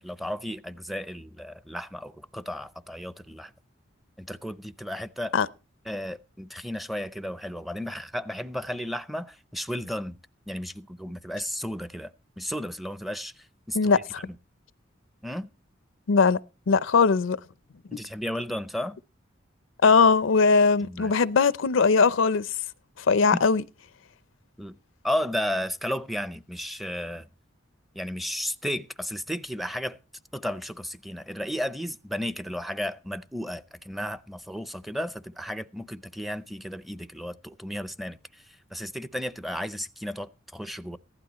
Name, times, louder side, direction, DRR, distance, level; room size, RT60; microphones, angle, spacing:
voice 1, 0.0-3.5 4.2-5.3 5.9-10.2 10.5-12.1 12.4-13.3 13.7-13.9 15.2-15.5 17.9-19.0 20.8-21.1 24.6-24.8 25.0-27.3 27.9-30.0 30.3-38.2 38.7-41.0, equal, ahead, 0.5 m, -33 dB
voice 2, 13.7-14.2 16.1-16.4 16.7-17.4 19.8-22.5 23.1-23.6, left 5 dB, 80° left, 0.5 m, -20 dB
15.5 x 12.0 x 3.0 m
head